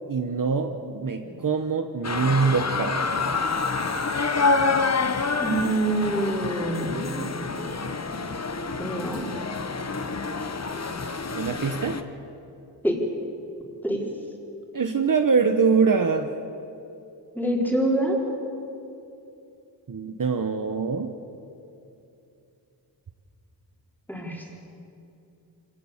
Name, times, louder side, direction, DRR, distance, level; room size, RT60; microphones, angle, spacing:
voice 1, 0.1-3.0 11.3-12.0 14.7-16.3 19.9-21.1, right 5 dB, 50° right, 6 dB, 1.1 m, -24 dB
sound 1, 2.0-12.0, left 4 dB, 40° left, 1.1 m, -27 dB
voice 2, 5.4-7.6 8.8-9.3 12.8-13.0 13.8-14.0 17.3-18.2 24.1-24.5, right 1 dB, 5° left, -1 dB, 4.3 m, -26 dB
25.5 x 18.5 x 7.3 m, 2.7 s
wide cardioid pair, 100°, 42 cm